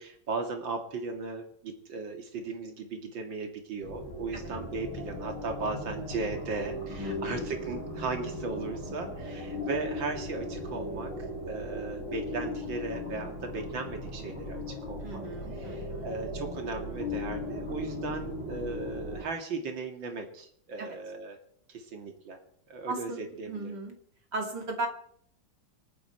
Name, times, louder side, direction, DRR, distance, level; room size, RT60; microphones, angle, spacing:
voice 1, 0.0-11.1 11.5-15.3 15.6-21.4 21.7-22.4 22.7-23.8, right 3 dB, 90° right, 4 dB, 2.8 m, -37 dB
sound 1, 3.8-19.2, left 1 dB, 70° left, 6.5 m, -37 dB
voice 2, 7.0-7.5 15.0-16.1 20.8-21.0 22.9-24.0 24.3-24.9, right 2 dB, 65° right, 2 dB, 3.1 m, -37 dB
26.5 x 10.0 x 4.5 m, 0.65 s
omnidirectional pair, 2.0 m